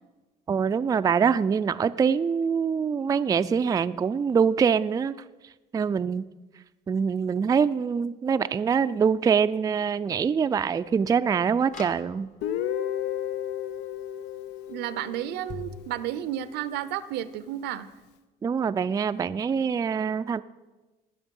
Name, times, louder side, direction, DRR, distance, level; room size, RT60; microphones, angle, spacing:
voice 1, 0.5-5.1 5.7-6.3 6.9-12.3 18.4-20.4, right 6 dB, 20° right, 11 dB, 0.3 m, -24 dB
sound 1, 11.6-12.6 15.5-15.8, left 5 dB, 50° left, 1.4 m, -41 dB
Guitar, 12.4-16.2, left 10 dB, 85° left, 0.6 m, -33 dB
voice 2, 14.7-17.9, right 12 dB, 85° right, 15 dB, 0.6 m, -32 dB
19.0 x 6.4 x 5.3 m, 1.2 s
cardioid pair, 110°, 17 cm